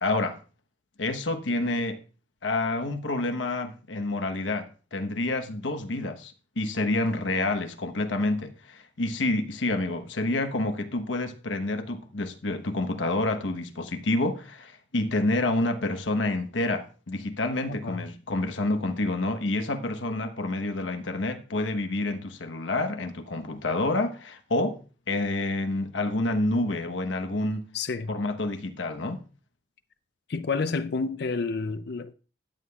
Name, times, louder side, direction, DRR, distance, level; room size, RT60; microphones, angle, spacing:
voice 1, 0.0-0.4 1.0-2.0 2.4-24.8 25.1-27.6 28.1-29.2, left 2 dB, 90° left, 1.1 m, -28 dB
voice 2, 27.7-28.1 30.3-32.1, left 4 dB, 60° left, 0.5 m, -29 dB
14.0 x 9.6 x 2.3 m
head